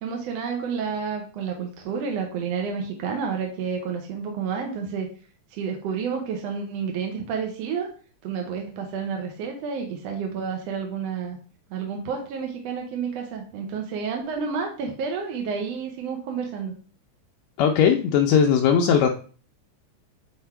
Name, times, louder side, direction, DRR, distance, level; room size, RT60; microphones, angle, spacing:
voice 1, 0.0-5.1 5.5-7.9 8.2-11.4 11.7-16.7, right 6 dB, 70° right, 2 dB, 1.8 m, -30 dB
voice 2, 17.6-19.1, left 7 dB, 80° left, 3 dB, 1.7 m, -19 dB
5.9 x 4.4 x 4.4 m, 0.40 s
omnidirectional pair, 3.5 m